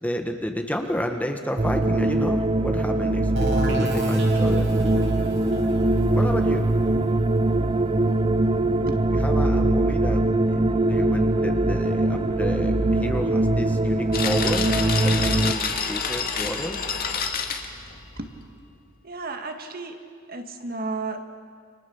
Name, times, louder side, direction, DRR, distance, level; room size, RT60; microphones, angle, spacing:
voice 1, 0.0-5.1 6.1-6.7 9.1-14.7 15.0-16.8, equal, 10° left, 4 dB, 1.7 m, -31 dB
sound 1, 1.6-15.5, right 2 dB, 25° right, 0.6 m, -22 dB
sound 2, 3.4-8.9, right 1 dB, 65° right, 4.9 m, -35 dB
sound 3, 14.1-18.5, left 5 dB, 45° left, 2.2 m, -28 dB
voice 2, 16.0-16.5 18.2-18.3 19.0-20.0 20.3-21.3, right 3 dB, 45° right, 5 dB, 2.1 m, -34 dB
29.5 x 26.5 x 7.3 m, 2.2 s
head